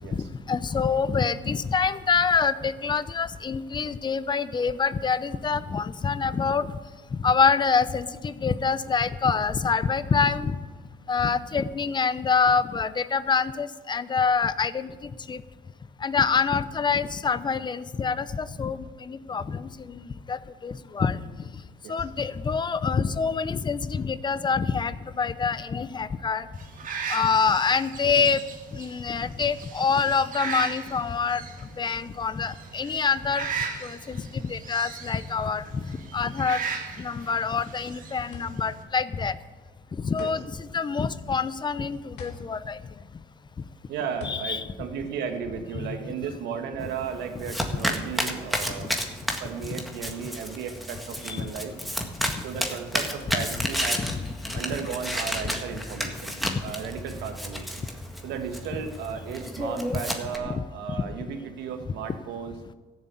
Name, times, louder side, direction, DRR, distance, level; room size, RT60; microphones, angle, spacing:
voice 1, 0.1-6.8 7.1-10.6 11.1-15.4 16.0-21.2 21.9-26.5 27.1-28.4 28.7-33.5 33.8-36.7 37.0-39.4 40.0-42.8 44.2-44.7 45.8-45.9 49.6-49.8 51.2-51.5 52.4-52.5 53.3-53.4 54.0-54.2 54.5-54.6 56.4-56.6 59.9-60.0 60.5-60.6, left 5 dB, 25° left, 15 dB, 0.6 m, -26 dB
sound 1, 26.5-38.8, right 5 dB, 50° right, 2.0 m, -37 dB
sound 2, 38.3-45.8, left 5 dB, 80° left, 3.0 m, -46 dB
voice 2, 43.9-49.0 49.4-51.7 52.4-54.1 54.5-56.4 56.6-57.8 58.2-62.5, right 7 dB, 85° right, 6 dB, 1.7 m, -35 dB
Domestic sounds home sounds, 46.8-60.4, equal, ahead, 1.7 m, -32 dB
14.0 x 7.4 x 8.4 m, 1.4 s
cardioid pair, 110°, 17 cm